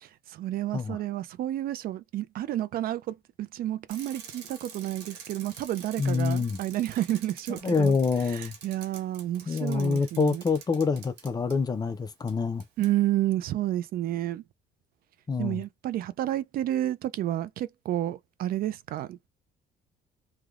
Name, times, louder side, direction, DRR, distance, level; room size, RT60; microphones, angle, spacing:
voice 1, 0.0-8.0 8.3-10.4 12.8-14.4 15.4-19.3, right 13 dB, 60° right, 0.4 m, -30 dB
Bicycle, 3.9-11.6 12.3-12.4 12.6-12.9, right 7 dB, 90° right, 1.2 m, -47 dB
voice 2, 6.0-6.6 7.6-8.5 9.5-12.6 15.3-15.6, left 4 dB, 25° left, 0.5 m, -26 dB
3.3 x 2.3 x 2.4 m
cardioid pair, 110°, 17 cm